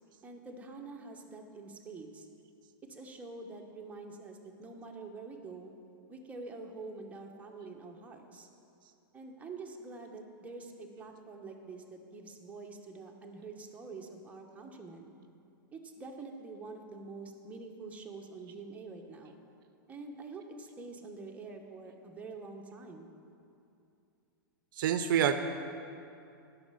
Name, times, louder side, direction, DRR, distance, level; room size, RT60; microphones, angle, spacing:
voice 1, 0.2-2.3 2.8-5.7 6.1-8.5 9.1-15.1 15.7-19.4 19.9-23.1, right 3 dB, 10° right, 1 dB, 1.1 m, -46 dB
voice 2, 24.8-25.3, right 9 dB, 65° right, 9 dB, 0.6 m, -26 dB
11.5 x 5.6 x 6.8 m, 2.6 s
hypercardioid pair, 120°, 12 cm